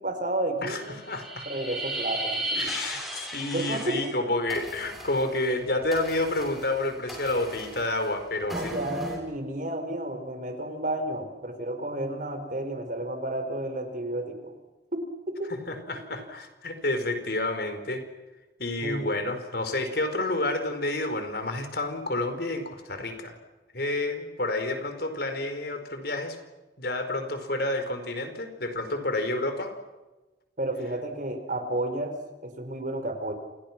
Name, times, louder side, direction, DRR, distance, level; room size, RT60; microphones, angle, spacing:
voice 1, 0.0-1.0 1.4-2.8 3.5-4.1 8.4-14.5 14.9-15.5 18.8-19.0 30.6-32.1 32.4-33.3, right 1 dB, 45° right, 7 dB, 4.8 m, -31 dB
voice 2, 0.6-1.5 2.6-8.7 15.5-18.1 18.6-23.4 23.7-26.4 26.8-29.8, left 2 dB, 55° left, 7 dB, 4.8 m, -29 dB
sound 1, 0.9-4.1 4.5-9.2, right 1 dB, ahead, 7.5 m, -36 dB
29.5 x 29.0 x 6.1 m, 1.1 s
head